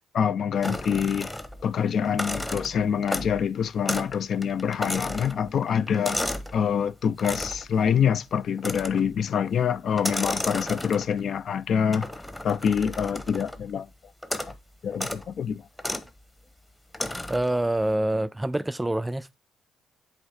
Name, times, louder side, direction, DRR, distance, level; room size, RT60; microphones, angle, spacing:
voice 1, 0.1-1.3 1.6-6.3 6.5-12.1 12.4-13.9 14.8-15.6, left 7 dB, 60° left, 0.4 m, -25 dB
sound 1, 0.6-1.7 2.0-3.5 3.9-4.2 4.4-6.6 7.2-7.7 8.6-9.1 9.9-11.2 11.9-13.6 14.2-14.6 14.9-15.2 15.8-16.1 16.9-17.5, left 1 dB, 10° left, 0.9 m, -33 dB
voice 2, 17.3-19.4, right 1 dB, 10° right, 0.3 m, -26 dB
8.0 x 3.1 x 5.5 m
cardioid pair, 90°, 0 cm